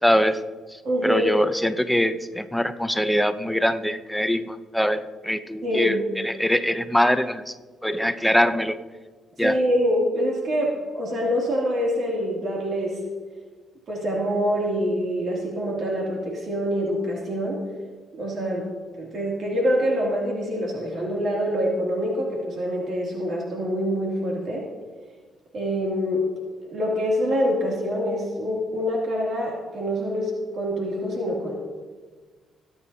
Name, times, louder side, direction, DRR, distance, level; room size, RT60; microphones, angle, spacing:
voice 1, 0.0-7.5 7.8-8.8 9.4-9.6, equal, ahead, 10 dB, 0.7 m, -23 dB
voice 2, 0.8-1.3 5.6-6.0 9.4-13.0 13.9-17.6 18.1-18.7 19.0-24.7 25.5-26.3 26.6-31.6, equal, 60° right, -3 dB, 2.7 m, -25 dB
21.5 x 8.9 x 2.8 m, 1.4 s
cardioid pair, 90°, 0 cm